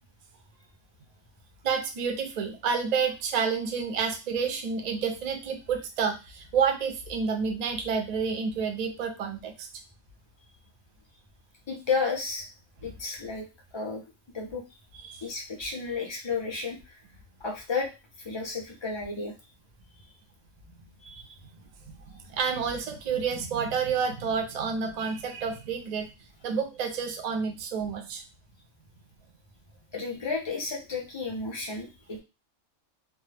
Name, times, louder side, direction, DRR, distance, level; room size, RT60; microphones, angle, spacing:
voice 1, 1.6-9.7 15.0-15.2 22.1-26.1 26.4-28.2, right 6 dB, 65° right, 5 dB, 0.4 m, -29 dB
voice 2, 11.7-12.5 12.8-13.5 13.7-14.0 14.3-14.6 15.2-17.0 17.4-17.9 18.2-19.3 21.0-21.4 29.9-32.2, left 4 dB, 45° left, 0 dB, 0.3 m, -32 dB
2.2 x 2.0 x 3.2 m, 0.28 s
omnidirectional pair, 1.3 m